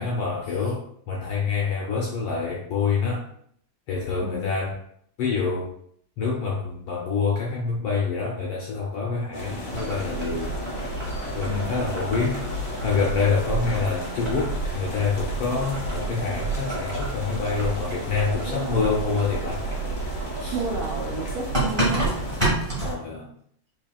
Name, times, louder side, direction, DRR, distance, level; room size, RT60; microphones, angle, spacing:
voice 1, 0.0-3.2 3.9-4.8 5.2-5.7 6.2-10.5 11.3-19.6 20.4-20.6 22.8-23.3, left 5 dB, 75° left, -3 dB, 1.3 m, -26 dB
sound 1, 9.3-22.4, left 1 dB, 45° left, 1.0 m, -36 dB
Boiling, 9.7-22.9, right 2 dB, 15° right, 1.0 m, -30 dB
voice 2, 18.5-18.9 20.5-22.1, right 4 dB, 85° right, -3 dB, 1.1 m, -32 dB
6.4 x 3.5 x 2.4 m, 0.65 s
omnidirectional pair, 3.4 m